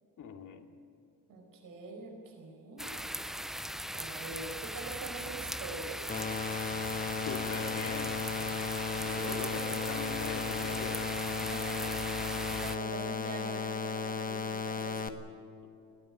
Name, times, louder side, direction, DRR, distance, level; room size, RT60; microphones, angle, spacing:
voice 1, 0.2-0.6 7.2-8.2 9.0-11.0, left 5 dB, 60° left, 4 dB, 2.6 m, -41 dB
voice 2, 1.3-2.9 3.9-6.0 9.0-9.5 11.4-15.1, right 3 dB, 70° right, 2 dB, 4.9 m, -44 dB
bnral lmnln rain outsde, 2.8-12.8, equal, ahead, 0.5 m, -39 dB
sound 1, 6.1-15.1, left 4 dB, 25° left, 1.4 m, -35 dB
21.0 x 17.0 x 8.6 m, 2.6 s
cardioid pair, 125°, 34 cm